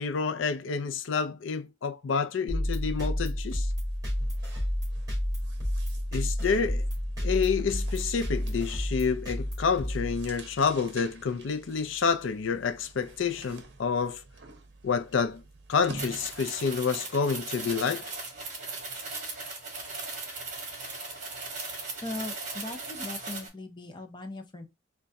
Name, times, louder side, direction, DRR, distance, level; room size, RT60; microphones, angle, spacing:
voice 1, 0.0-3.7 6.1-6.9 7.2-14.2 14.8-15.4 15.7-18.1, left 5 dB, 90° left, 0.5 m, -28 dB
sound 1, 2.5-10.7, equal, 20° right, 1.9 m, -31 dB
sound 2, 2.7-2.9 3.2-16.6, right 2 dB, 60° right, 0.7 m, -49 dB
sound 3, 16.0-23.5, right 3 dB, 40° right, 1.2 m, -38 dB
voice 2, 22.0-24.7, left 2 dB, 25° left, 0.6 m, -39 dB
4.0 x 2.3 x 3.3 m
head